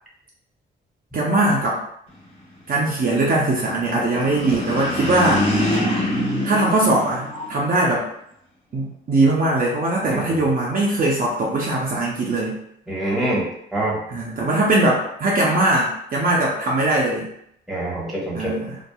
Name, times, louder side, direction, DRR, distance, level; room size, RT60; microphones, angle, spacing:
voice 1, 1.1-1.8 2.7-5.5 6.4-8.0 8.7-12.6 14.1-17.3 18.3-18.8, right 2 dB, 45° right, -4 dB, 0.6 m, -20 dB
sound 1, 4.1-7.7, left 1 dB, 30° left, 1.0 m, -24 dB
voice 2, 10.1-10.4 12.9-13.4 13.7-14.0 17.7-18.5, right 1 dB, ahead, -5 dB, 1.1 m, -25 dB
2.7 x 2.3 x 2.3 m, 0.73 s
cardioid pair, 75°, 20 cm